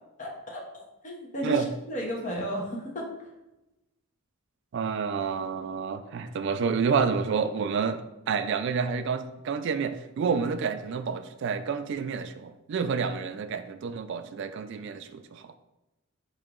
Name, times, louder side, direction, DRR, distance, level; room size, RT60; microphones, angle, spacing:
voice 1, 0.2-0.6 1.0-3.1, equal, 35° left, -2 dB, 0.9 m, -33 dB
voice 2, 4.7-15.5, right 5 dB, 55° right, 10 dB, 0.3 m, -29 dB
4.4 x 2.9 x 3.7 m, 0.98 s
head